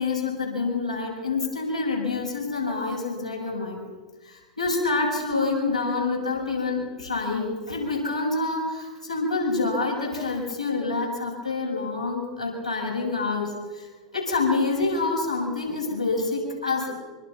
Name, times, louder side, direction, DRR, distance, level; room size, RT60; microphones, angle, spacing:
voice 1, 0.0-3.8 4.2-13.9 14.1-17.0, left 3 dB, 85° left, -1 dB, 6.9 m, -27 dB
25.5 x 24.5 x 5.8 m, 1.3 s
figure-of-eight pair, 90°, 4 cm